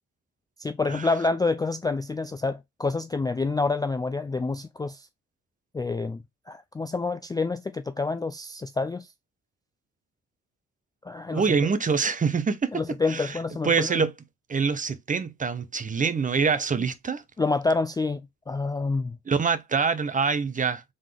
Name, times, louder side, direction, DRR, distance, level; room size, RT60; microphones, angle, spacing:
voice 1, 0.6-5.0 5.7-6.2 6.5-9.1 11.0-11.4 12.7-14.0 17.4-18.2 18.5-19.2, left 3 dB, 15° left, 0.3 m, -27 dB
voice 2, 11.3-13.4 13.6-14.1 14.5-17.2 19.3-20.8, right 5 dB, 25° right, 0.7 m, -25 dB
3.8 x 3.6 x 3.3 m
cardioid pair, 90°, 30 cm